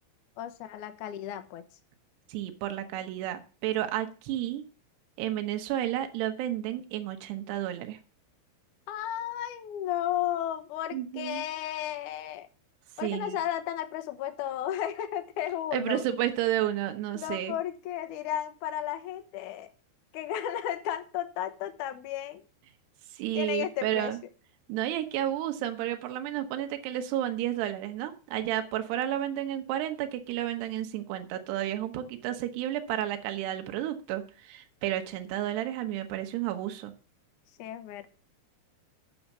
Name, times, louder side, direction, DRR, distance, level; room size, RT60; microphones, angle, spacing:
voice 1, 0.4-1.6 8.9-12.5 13.0-16.0 17.2-19.7 20.1-22.4 23.3-24.1 37.6-38.1, left 11 dB, 65° left, 9 dB, 2.1 m, -33 dB
voice 2, 2.3-4.6 5.2-8.0 10.9-11.4 13.0-13.4 15.7-17.6 23.1-24.2 24.7-36.9, right 12 dB, 80° right, 6 dB, 3.2 m, -31 dB
9.4 x 7.1 x 7.1 m, 0.36 s
omnidirectional pair, 4.8 m